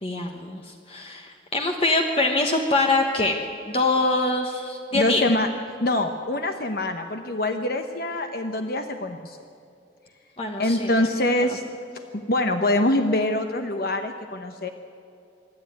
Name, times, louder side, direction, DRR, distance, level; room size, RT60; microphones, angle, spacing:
voice 1, 0.0-3.4 3.7-5.2 10.4-10.9, left 2 dB, 30° left, 3 dB, 1.2 m, -24 dB
voice 2, 4.9-5.5 5.8-9.4 10.6-11.6 12.1-14.7, left 1 dB, 55° left, 6 dB, 0.9 m, -24 dB
26.0 x 11.5 x 9.4 m, 2.6 s
head